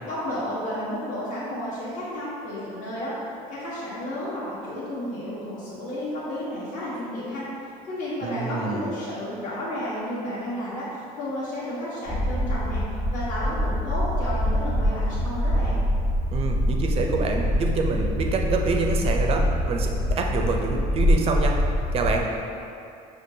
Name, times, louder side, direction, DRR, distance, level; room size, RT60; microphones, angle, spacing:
voice 1, 0.1-3.2 3.5-7.5 7.9-12.8 13.1-15.8, left 1 dB, 55° left, -11 dB, 1.0 m, -32 dB
voice 2, 8.2-8.8 16.3-21.6 21.9-22.3, right 4 dB, 40° right, 2 dB, 0.4 m, -26 dB
sound 1, 12.1-22.2, equal, 30° left, 0.9 m, -24 dB
6.1 x 2.3 x 2.7 m, 2.6 s
cardioid pair, 150°, 15 cm